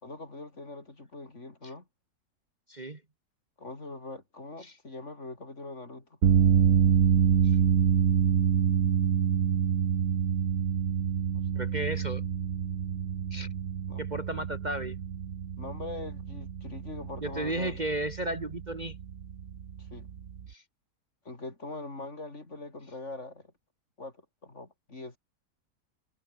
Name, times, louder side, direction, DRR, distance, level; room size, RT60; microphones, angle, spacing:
voice 1, 0.0-1.8 3.6-6.1 11.3-11.6 13.9-14.0 15.6-17.8 19.8-20.1 21.2-23.5 24.0-25.2, left 2 dB, 45° left, 4.1 m, -42 dB
voice 2, 2.7-3.0 4.6-4.8 7.4-7.6 11.6-12.2 13.3-13.5 14.0-15.0 17.2-19.0 20.5-20.6, right 1 dB, 25° right, 1.7 m, -34 dB
sound 1, 6.2-20.5, right 8 dB, 55° right, 1.4 m, -27 dB
omnidirectional pair, 1.8 m